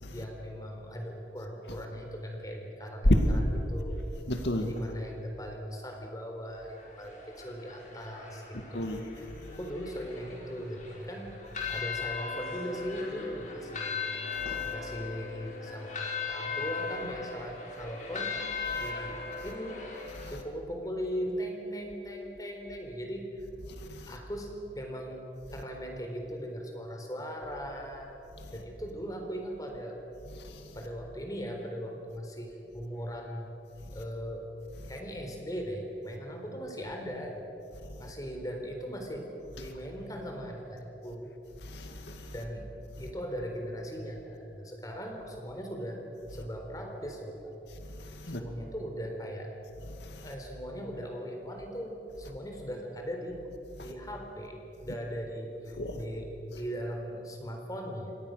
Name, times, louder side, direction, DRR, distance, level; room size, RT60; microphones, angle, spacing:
voice 1, 0.1-4.0 4.6-9.3 9.6-11.3 11.7-18.4 18.8-19.8 20.3-23.5 24.1-25.2 25.5-28.1 28.5-30.0 30.7-33.5 33.9-34.5 34.9-37.4 38.0-39.3 39.6-41.3 42.3-42.7 43.0-46.0 46.3-47.5 48.3-49.5 50.2-53.4 53.8-58.1, equal, 20° left, 4.0 m, -39 dB
voice 2, 4.3-4.7 8.5-9.0 14.5-14.7 18.7-18.9 20.2-20.3 23.8-24.1 30.4-30.6 38.0-38.1 41.6-42.3 48.0-48.4 49.9-50.3 53.8-53.9 55.8-56.0, left 1 dB, 80° left, 2.1 m, -31 dB
sound 1, 6.5-20.3, left 5 dB, 45° left, 5.0 m, -38 dB
28.5 x 25.0 x 6.6 m
head